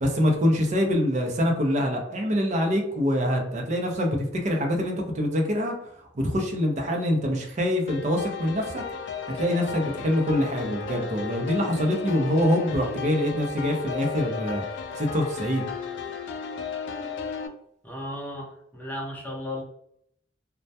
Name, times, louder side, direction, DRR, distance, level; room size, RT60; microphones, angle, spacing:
voice 1, 0.0-8.8 9.3-14.6 14.9-15.6, equal, 40° right, 2 dB, 0.5 m, -25 dB
sound 1, 7.9-17.5, left 6 dB, 90° left, 0.3 m, -34 dB
voice 2, 17.8-19.6, left 1 dB, 10° left, -4 dB, 0.7 m, -35 dB
2.1 x 2.1 x 2.7 m, 0.71 s
head